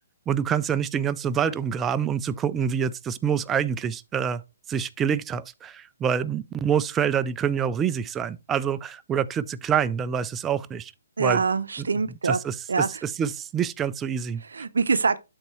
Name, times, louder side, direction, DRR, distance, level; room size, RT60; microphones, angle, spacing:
voice 1, 0.3-4.4 4.7-10.9 11.2-11.4 11.8-11.9 12.2-14.4, right 7 dB, 10° right, 0.3 m, -26 dB
voice 2, 11.2-12.4 12.7-12.9 14.5-15.2, right 4 dB, 85° right, 0.5 m, -24 dB
11.5 x 4.0 x 3.0 m
hypercardioid pair, 160°, 0 cm